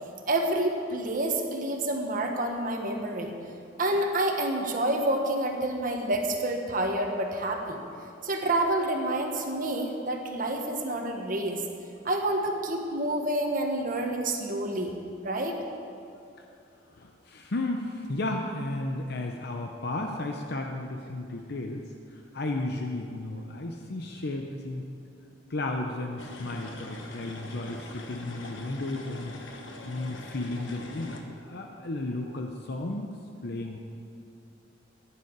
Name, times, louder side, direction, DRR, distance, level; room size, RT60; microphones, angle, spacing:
voice 1, 0.3-3.3 3.8-7.8 8.2-11.6 12.0-15.0 15.2-15.6, right 1 dB, 45° right, 2 dB, 1.3 m, -28 dB
voice 2, 16.9-24.9 25.5-29.4 29.8-33.1 33.4-33.8, left 2 dB, 55° left, 3 dB, 0.8 m, -34 dB
sound 1, 26.2-31.2, left 1 dB, 75° left, 1.2 m, -43 dB
15.0 x 10.0 x 4.7 m, 2.7 s
head